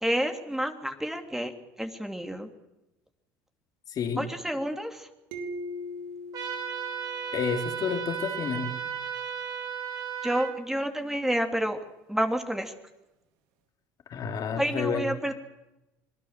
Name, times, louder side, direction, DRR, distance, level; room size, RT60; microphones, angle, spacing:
voice 1, 0.0-1.5 1.8-2.5 4.2-5.1 10.2-11.8 12.1-12.7 14.6-15.3, equal, 5° right, 5 dB, 3.2 m, -29 dB
voice 2, 3.9-4.3 7.3-8.7 14.1-15.1, left 6 dB, 50° left, 4 dB, 3.5 m, -30 dB
sound 1, 5.3-7.9, left 1 dB, 75° right, 3.9 m, -40 dB
sound 2, 6.3-10.5, right 8 dB, 45° right, 6.2 m, -35 dB
26.0 x 19.5 x 7.6 m, 0.95 s
supercardioid pair, 80°, 8 cm